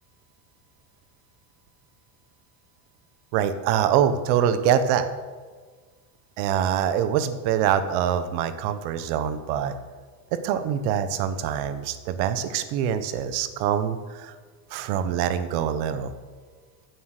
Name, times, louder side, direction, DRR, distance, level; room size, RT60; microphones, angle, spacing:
voice 1, 3.3-5.1 6.4-9.7 10.3-14.3 14.7-16.1, right 9 dB, 90° right, 11 dB, 1.3 m, -24 dB
15.5 x 8.0 x 6.7 m, 1.5 s
cardioid pair, 165°, 44 cm